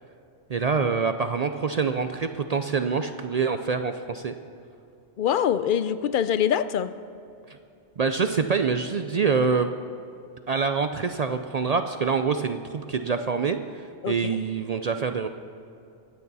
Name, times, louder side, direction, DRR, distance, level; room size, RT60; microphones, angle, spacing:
voice 1, 0.5-4.4 7.5-7.6 8.0-9.7 10.5-15.3, right 5 dB, 70° right, 8 dB, 0.3 m, -26 dB
voice 2, 5.2-6.9 14.0-14.4, left 9 dB, 60° left, 14 dB, 0.6 m, -24 dB
24.0 x 9.3 x 4.1 m, 2.6 s
omnidirectional pair, 1.2 m